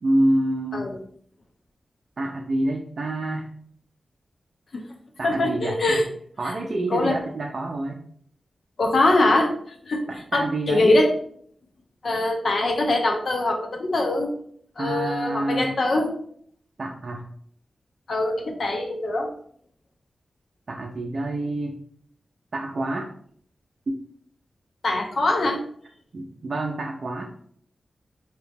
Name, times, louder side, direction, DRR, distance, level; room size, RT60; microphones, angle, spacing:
voice 1, 0.0-0.9 2.2-3.5 5.2-6.0 6.4-8.0 10.1-10.9 14.8-15.8 16.8-17.3 20.7-21.8 22.5-23.1 23.9-24.0 26.1-27.5, right 1 dB, 55° right, 0 dB, 0.4 m, -27 dB
voice 2, 5.2-6.0 6.9-7.2 8.8-9.5 9.9-10.0 10.3-11.1 12.0-14.3 14.8-16.1 18.1-19.3 24.8-25.6, left 2 dB, 65° left, 2 dB, 0.7 m, -22 dB
3.0 x 2.8 x 3.3 m, 0.62 s
wide cardioid pair, 115°, 0 cm